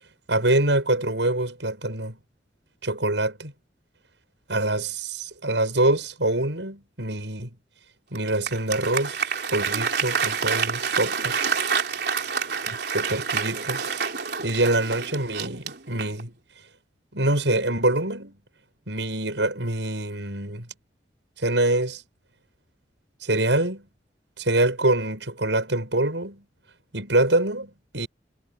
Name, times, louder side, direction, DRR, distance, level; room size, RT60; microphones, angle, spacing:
voice 1, 0.3-2.2 2.8-3.5 4.5-7.6 8.1-11.4 12.7-14.0 14.4-16.3 17.1-18.4 18.9-20.7 21.4-22.0 23.2-23.9 24.4-26.4 26.9-28.1, right 2 dB, 85° right, 7.5 m, -25 dB
Applause, 8.1-16.3, right 6 dB, 65° right, 3.8 m, -28 dB
head